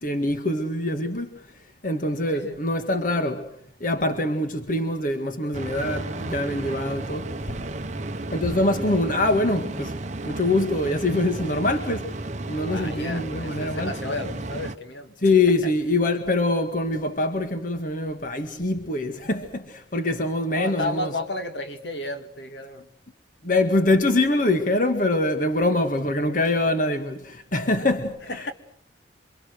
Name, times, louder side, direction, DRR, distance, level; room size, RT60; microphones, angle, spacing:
voice 1, 0.0-3.5 3.8-7.6 8.3-10.0 10.3-12.2 12.5-14.0 15.2-21.1 23.4-28.5, left 2 dB, 45° left, 1.9 m, -24 dB
sound 1, 5.5-14.8, right 2 dB, 40° right, 1.0 m, -33 dB
voice 2, 12.7-15.1 20.5-22.9 28.3-28.5, left 1 dB, 70° left, 2.5 m, -32 dB
28.0 x 25.5 x 6.5 m
head